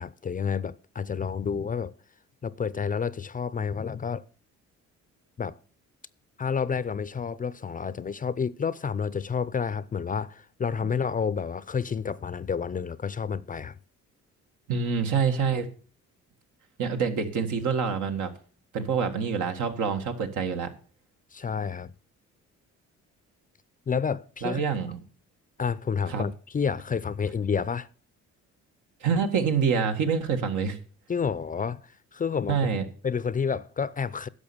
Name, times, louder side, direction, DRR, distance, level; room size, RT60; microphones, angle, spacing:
voice 1, 0.0-1.9 2.4-4.2 5.4-5.6 6.4-13.8 21.3-21.9 23.9-24.6 25.6-27.9 31.1-32.6 33.0-34.3, left 6 dB, 30° left, 0.5 m, -30 dB
voice 2, 14.7-15.7 16.8-18.3 18.7-20.7 24.4-25.0 26.1-26.2 29.0-30.8 32.5-32.9, right 6 dB, 80° right, 1.8 m, -26 dB
10.5 x 6.5 x 7.1 m
cardioid pair, 90°, 30 cm